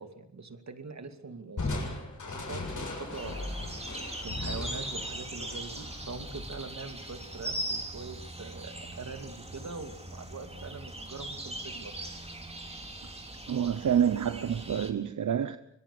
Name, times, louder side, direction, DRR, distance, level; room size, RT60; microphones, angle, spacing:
voice 1, 0.0-1.9 2.2-3.4 4.2-12.0, right 4 dB, 65° right, 2.6 m, -43 dB
Crushing, 1.6-7.0, left 2 dB, 80° left, 7.4 m, -38 dB
sound 1, 3.1-14.9, right 1 dB, 20° right, 3.9 m, -40 dB
voice 2, 13.5-15.6, right 8 dB, 90° right, 0.9 m, -27 dB
24.5 x 22.5 x 6.9 m
wide cardioid pair, 65°, 30 cm